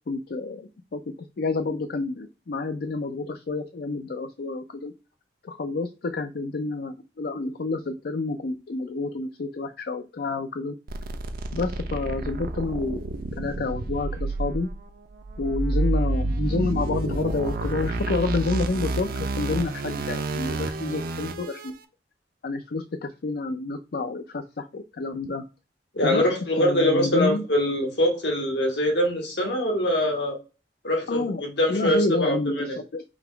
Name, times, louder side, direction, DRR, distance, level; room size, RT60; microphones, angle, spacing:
voice 1, 0.1-4.9 5.4-10.8 11.5-13.0 13.4-14.7 15.4-21.7 22.4-25.4 26.0-26.3 26.6-27.4 31.1-31.4 31.7-33.0, left 3 dB, 60° left, 7 dB, 0.4 m, -29 dB
sound 1, 10.9-21.7, right 2 dB, 55° right, 0.6 m, -29 dB
voice 2, 25.9-30.4 30.8-32.7, left 1 dB, 75° left, 2 dB, 1.6 m, -23 dB
3.9 x 2.9 x 4.5 m, 0.31 s
head